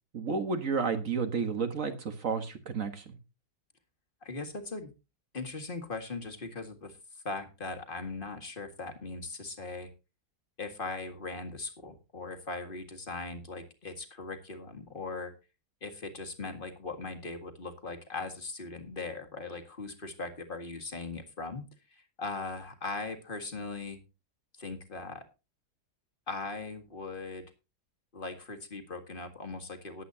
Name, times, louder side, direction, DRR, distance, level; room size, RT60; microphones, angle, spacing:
voice 1, 0.1-3.2, right 5 dB, 50° right, 7 dB, 1.7 m, -31 dB
voice 2, 4.2-4.9 5.3-9.9 10.6-15.3 15.8-21.6 21.9-24.0 24.6-25.2 26.3-27.4 28.1-30.0, left 3 dB, 30° left, 6 dB, 1.9 m, -39 dB
19.5 x 8.3 x 2.8 m, 0.28 s
omnidirectional pair, 1.8 m